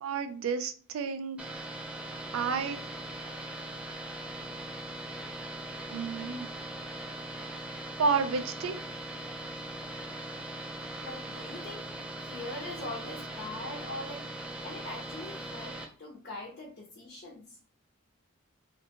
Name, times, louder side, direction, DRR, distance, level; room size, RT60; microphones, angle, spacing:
voice 1, 0.0-1.6 2.3-2.8 5.9-6.5 8.0-8.7, right 5 dB, 75° right, 10 dB, 0.4 m, -31 dB
sound 1, 1.4-15.8, right 1 dB, 5° right, 0.4 m, -40 dB
voice 2, 11.0-11.9 12.3-14.3 14.6-17.6, left 2 dB, 45° left, -1 dB, 0.6 m, -42 dB
2.5 x 2.2 x 2.8 m, 0.41 s
head